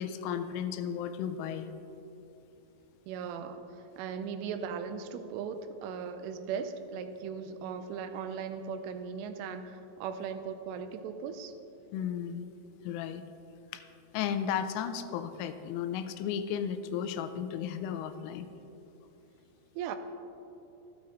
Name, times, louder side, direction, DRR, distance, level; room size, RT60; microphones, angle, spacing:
voice 1, 0.0-1.7 11.9-12.4 12.8-13.2 13.7-13.8 14.1-18.5, left 8 dB, 85° left, 9 dB, 3.1 m, -34 dB
voice 2, 3.1-3.6 4.0-11.5 19.8-20.0, right 6 dB, 90° right, 8 dB, 3.2 m, -38 dB
13.5 x 9.6 x 3.8 m, 3.0 s
omnidirectional pair, 5.5 m